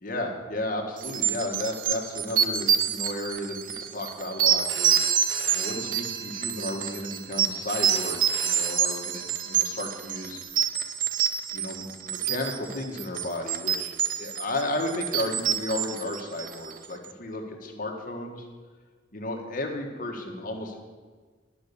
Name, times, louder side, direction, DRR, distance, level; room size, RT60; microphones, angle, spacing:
voice 1, 0.0-5.1 5.5-10.4 11.5-13.9 14.2-18.5 19.1-20.8, left 1 dB, 50° left, 2 dB, 1.4 m, -33 dB
sound 1, 1.0-16.8, right 8 dB, 50° right, 0.6 m, -27 dB
Telephone, 4.5-10.4, right 7 dB, 75° right, 0.9 m, -35 dB
11.5 x 5.3 x 6.9 m, 1.5 s
head